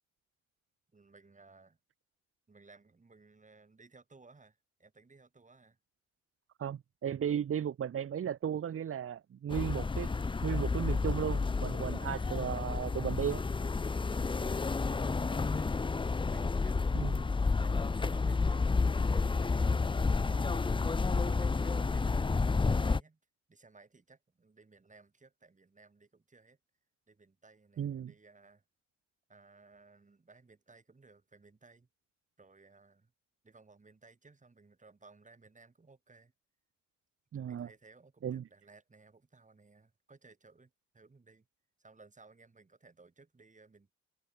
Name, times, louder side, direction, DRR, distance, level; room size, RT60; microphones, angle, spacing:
voice 1, 0.9-1.8 2.5-5.8 12.0-12.5 15.0-15.9 16.2-16.8 17.3-20.0 20.3-23.2 23.5-26.6 27.1-28.6 29.3-31.9 32.4-33.1 33.4-36.3 37.5-41.5 41.8-43.9, right 3 dB, 25° right, 7.8 m, -59 dB
voice 2, 6.6-10.1 10.4-13.4 16.9-17.3 27.8-28.1 37.3-37.7 38.2-38.4, right 9 dB, 45° right, 1.2 m, -35 dB
sound 1, 9.5-23.0, left 4 dB, 15° left, 0.6 m, -30 dB
cardioid pair, 90°, 30 cm